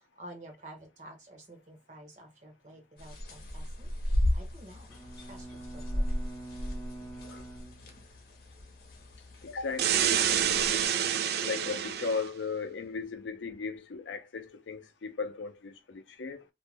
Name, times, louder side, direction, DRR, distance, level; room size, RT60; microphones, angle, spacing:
voice 1, 0.2-4.9 5.3-6.0, right 1 dB, 40° right, 0.9 m, -50 dB
sound 1, 3.0-10.8, left 1 dB, 50° left, 0.8 m, -35 dB
Bowed string instrument, 4.9-8.5, right 2 dB, ahead, 0.5 m, -46 dB
voice 2, 9.4-10.1 11.4-16.4, left 4 dB, 90° left, 0.5 m, -36 dB
sound 2, 9.8-12.3, right 9 dB, 60° right, 0.3 m, -27 dB
2.5 x 2.1 x 3.2 m
head